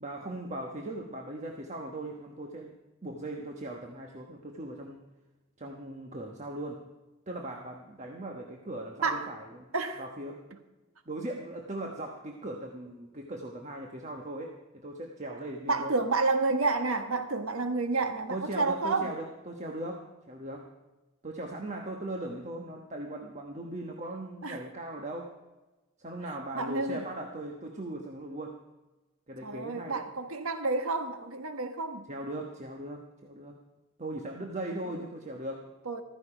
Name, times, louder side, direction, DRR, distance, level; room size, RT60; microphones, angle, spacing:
voice 1, 0.0-2.7 3.0-5.0 5.6-6.8 7.3-9.7 10.0-10.5 11.1-15.9 18.3-20.7 21.2-25.4 26.0-28.6 29.3-30.1 32.1-33.6 34.0-35.7, right 1 dB, 35° right, 1 dB, 1.2 m, -39 dB
voice 2, 15.7-19.1 24.4-24.6 26.5-27.0 29.4-32.0 35.9-36.0, right 3 dB, 90° right, 8 dB, 1.4 m, -30 dB
14.5 x 14.5 x 5.0 m, 1.1 s
head